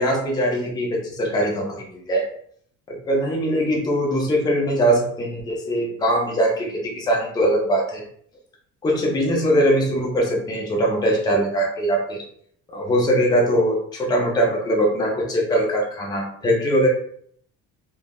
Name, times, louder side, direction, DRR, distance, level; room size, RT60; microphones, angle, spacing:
voice 1, 0.0-2.2 2.9-8.0 8.8-12.2 12.7-16.9, equal, 15° left, -1 dB, 0.4 m, -21 dB
3.4 x 2.3 x 2.2 m, 0.62 s
cardioid pair, 160°, 32 cm